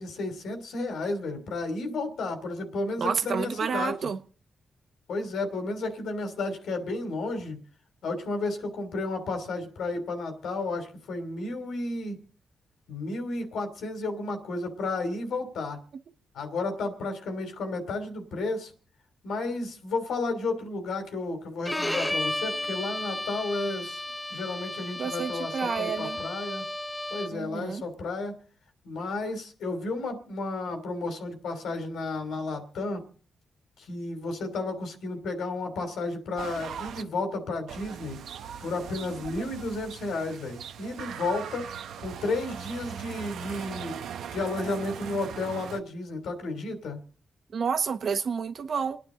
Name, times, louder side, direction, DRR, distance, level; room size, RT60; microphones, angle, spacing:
voice 1, 0.0-3.9 5.1-7.6 8.0-12.2 12.9-15.8 16.3-18.7 19.2-24.0 24.3-26.6 27.1-28.3 28.8-33.0 33.8-38.2 38.6-41.7 42.0-44.0 44.3-47.0, left 2 dB, 85° left, 3.2 m, -32 dB
voice 2, 3.0-4.2 25.0-26.2 27.3-27.8 47.5-49.0, right 6 dB, 60° right, 1.4 m, -29 dB
Bowed string instrument, 21.7-27.5, left 1 dB, 10° left, 0.8 m, -33 dB
fx loop, 36.4-37.0 37.7-45.8, right 8 dB, 90° right, 0.9 m, -40 dB
29.0 x 9.7 x 3.9 m
cardioid pair, 85°, 0 cm